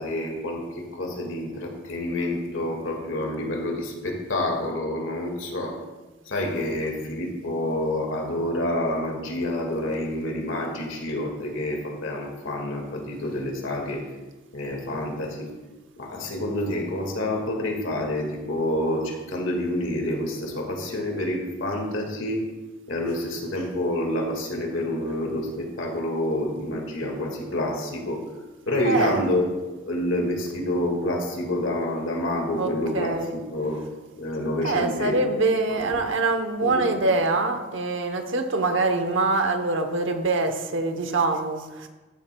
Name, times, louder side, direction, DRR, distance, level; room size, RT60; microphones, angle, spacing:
voice 1, 0.0-5.8 6.3-14.0 14.5-15.5 16.0-22.4 22.9-28.2 28.7-33.8 34.2-35.1 35.7-36.0 36.6-36.8, left 1 dB, 80° left, 1 dB, 1.8 m, -28 dB
voice 2, 28.8-29.3 32.6-33.3 34.6-41.9, right 3 dB, 70° right, 7 dB, 0.9 m, -24 dB
13.5 x 7.8 x 2.2 m, 1.2 s
head